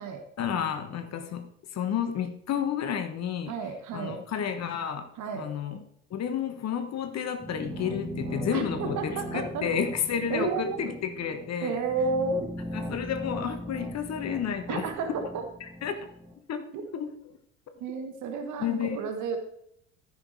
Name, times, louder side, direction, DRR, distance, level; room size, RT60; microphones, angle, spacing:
voice 1, 0.4-3.5 3.9-5.1 5.4-5.8 6.1-11.8 12.9-14.9 15.8-16.1 16.5-17.1 18.6-19.0, left 8 dB, 40° left, 8 dB, 1.3 m, -31 dB
voice 2, 3.5-4.2 5.2-5.5 8.5-9.7 10.3-10.8 11.6-12.5 14.7-15.4 16.7-16.8 17.8-19.4, right 4 dB, 50° right, 6 dB, 1.6 m, -31 dB
sound 1, 7.4-16.3, equal, 25° right, 3.1 m, -39 dB
14.0 x 6.0 x 4.6 m, 0.72 s
figure-of-eight pair, 60°, 39 cm